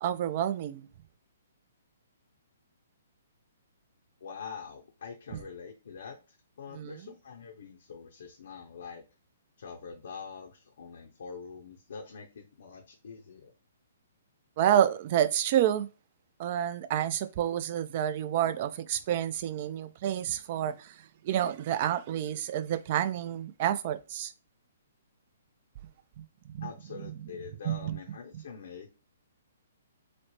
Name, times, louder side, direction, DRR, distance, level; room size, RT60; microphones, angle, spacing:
voice 1, 0.0-0.9 6.7-7.0 14.6-15.9 16.4-21.0 21.2-24.3 26.2-26.3 26.5-26.7 27.1-27.3 27.6-28.0 28.3-28.4, right 10 dB, 45° right, 0.3 m, -29 dB
voice 2, 4.2-9.0 9.6-13.5 26.6-28.9, left 6 dB, 60° left, 0.5 m, -45 dB
3.1 x 2.0 x 2.8 m
figure-of-eight pair, 125°, 0 cm